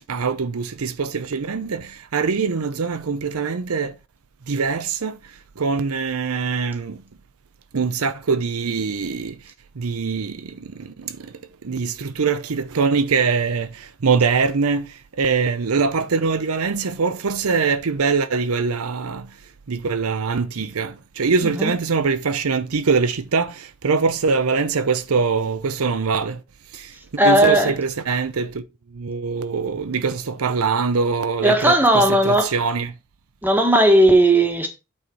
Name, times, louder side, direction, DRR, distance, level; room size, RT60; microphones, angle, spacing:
voice 1, 0.1-3.9 4.5-5.2 5.6-7.0 7.7-9.3 9.8-10.5 10.8-11.1 11.6-13.7 14.0-14.9 15.2-19.3 19.7-26.4 27.2-28.6 29.0-32.9, right 5 dB, 80° right, 0.7 m, -23 dB
voice 2, 21.4-21.7 27.2-27.7 31.4-32.5 33.4-34.7, right 1 dB, 10° right, 1.4 m, -16 dB
8.6 x 4.3 x 4.6 m
head